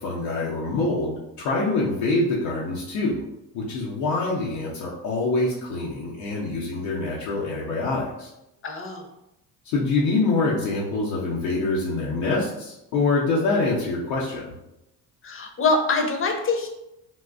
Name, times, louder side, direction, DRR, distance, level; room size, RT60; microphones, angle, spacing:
voice 1, 0.0-3.2 3.5-8.3 9.7-14.5, left 3 dB, 80° left, -5 dB, 0.7 m, -25 dB
voice 2, 8.6-9.0 15.2-16.7, left 3 dB, 30° left, 3 dB, 0.6 m, -24 dB
3.8 x 2.2 x 2.4 m, 0.89 s
supercardioid pair, 70°, 46 cm